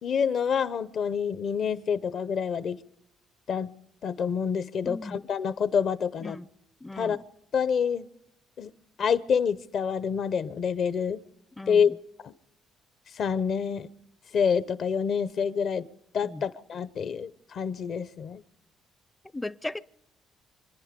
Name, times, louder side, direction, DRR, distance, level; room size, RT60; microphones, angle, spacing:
voice 1, 0.0-2.8 3.5-3.7 4.0-6.4 7.0-7.2 7.5-8.1 8.6-8.7 9.0-11.2 11.7-11.9 12.2-12.3 13.2-13.9 14.3-15.9 16.1-18.4, left 6 dB, 55° left, 0.8 m, -27 dB
voice 2, 4.8-5.2 6.2-6.5 6.8-7.2 11.6-12.0 16.2-16.4 19.3-19.8, left 2 dB, 10° left, 0.5 m, -37 dB
26.5 x 10.5 x 5.2 m
cardioid pair, 85°, 0 cm